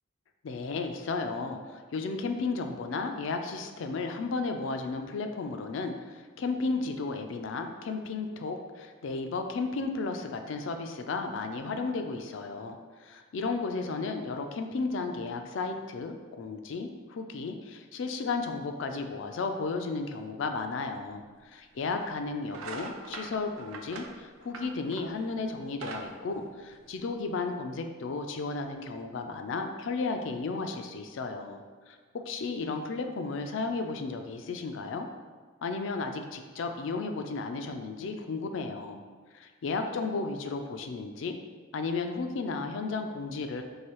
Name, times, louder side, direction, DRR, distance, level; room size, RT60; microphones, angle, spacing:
voice 1, 0.4-35.1 35.6-39.0 39.3-41.4 41.7-43.6, left 4 dB, 70° left, 5 dB, 0.4 m, -34 dB
sound 1, 21.1-21.2 21.9-22.1 22.5-25.2 25.6-27.2, right 4 dB, 85° right, 0.4 m, -42 dB
4.7 x 2.7 x 3.0 m, 1.5 s
head